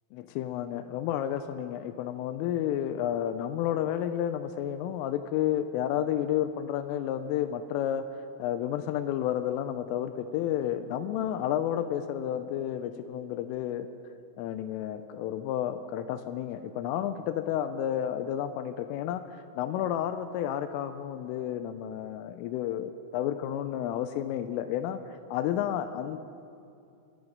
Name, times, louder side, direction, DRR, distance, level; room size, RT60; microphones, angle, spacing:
voice 1, 0.1-8.0 8.4-13.9 14.4-25.0 25.3-26.2, left 10 dB, 85° left, 10 dB, 3.0 m, -31 dB
24.5 x 9.7 x 5.3 m, 2.6 s
omnidirectional pair, 5.9 m